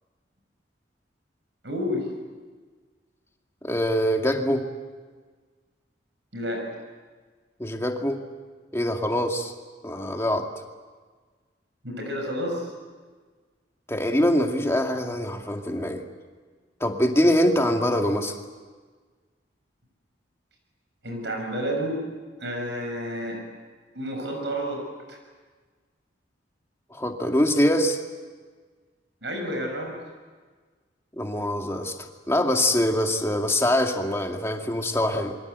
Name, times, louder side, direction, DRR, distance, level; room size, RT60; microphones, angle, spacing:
voice 1, 1.6-2.0 6.3-6.6 11.8-12.6 21.0-22.0 22.4-23.4 24.0-24.8 29.2-29.9, equal, 70° right, 3 dB, 7.0 m, -30 dB
voice 2, 3.6-4.6 7.6-8.2 8.7-9.5 9.8-10.5 13.9-16.0 16.8-18.4 26.9-28.0 31.1-35.4, left 1 dB, 15° left, 3 dB, 2.2 m, -24 dB
28.0 x 23.5 x 8.2 m, 1.4 s
head